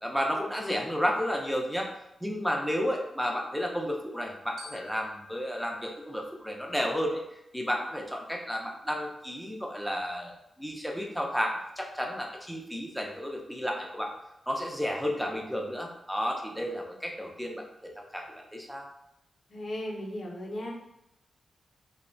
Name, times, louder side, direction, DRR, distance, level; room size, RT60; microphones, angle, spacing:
voice 1, 0.0-1.9 2.2-14.1 14.5-18.3 18.5-18.9, equal, ahead, 0 dB, 0.4 m, -32 dB
Glockenspiel, 4.6-7.1, left 2 dB, 70° right, 0.6 m, -51 dB
voice 2, 19.5-20.7, left 1 dB, 45° left, -1 dB, 0.6 m, -36 dB
2.7 x 2.1 x 2.6 m, 0.85 s
cardioid pair, 95°, 0 cm